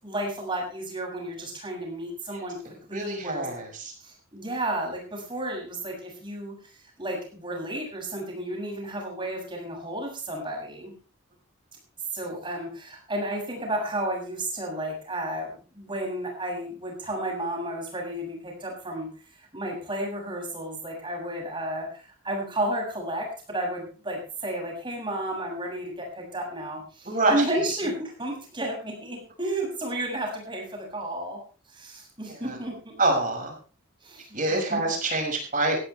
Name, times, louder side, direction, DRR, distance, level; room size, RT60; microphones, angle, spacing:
voice 1, 0.0-3.6 4.0-10.9 12.1-19.1 19.4-31.4 31.7-33.0 34.0-34.8, right 1 dB, 25° right, 0 dB, 7.4 m, -32 dB
voice 2, 2.9-3.9 27.0-27.4 32.3-32.6 33.0-33.5 34.3-35.8, right 2 dB, 40° right, 2 dB, 6.4 m, -26 dB
18.5 x 16.0 x 3.4 m, 0.38 s
head